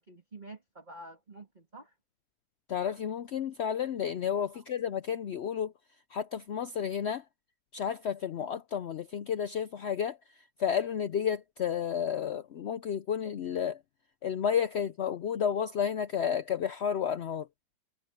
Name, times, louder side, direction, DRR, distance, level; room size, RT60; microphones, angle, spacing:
voice 1, 0.0-1.9 4.5-4.7, right 2 dB, 25° right, 2.6 m, -48 dB
voice 2, 2.7-5.7 6.1-7.2 7.7-10.2 10.6-13.8 14.2-17.5, left 8 dB, 85° left, 0.5 m, -31 dB
omnidirectional pair, 1.9 m